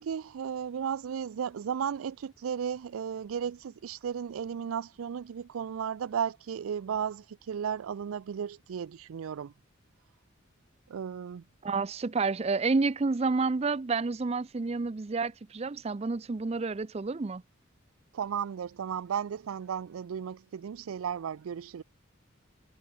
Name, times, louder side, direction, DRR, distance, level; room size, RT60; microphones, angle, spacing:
voice 1, 0.0-9.5 10.9-11.4 18.1-21.8, right 8 dB, 90° right, 0.4 m, -34 dB
voice 2, 11.6-17.4, right 4 dB, 30° right, 0.4 m, -29 dB
head